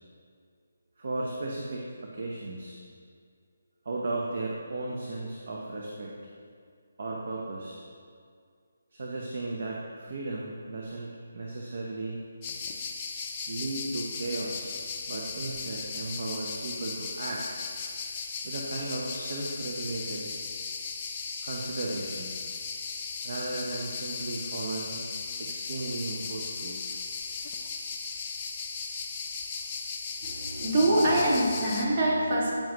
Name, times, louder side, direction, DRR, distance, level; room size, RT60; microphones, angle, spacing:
voice 1, 1.0-2.8 3.8-6.1 7.0-7.8 8.9-12.2 13.5-14.8 15.1-17.6 18.4-20.3 21.4-22.3 23.2-25.0 25.4-27.0, right 2 dB, 60° right, -2 dB, 0.9 m, -35 dB
sound 1, 12.4-31.9, left 5 dB, 25° left, 0.6 m, -37 dB
voice 2, 30.2-32.5, right 1 dB, 35° right, -6 dB, 2.0 m, -24 dB
8.9 x 7.6 x 3.0 m, 2.1 s
hypercardioid pair, 165°, 0 cm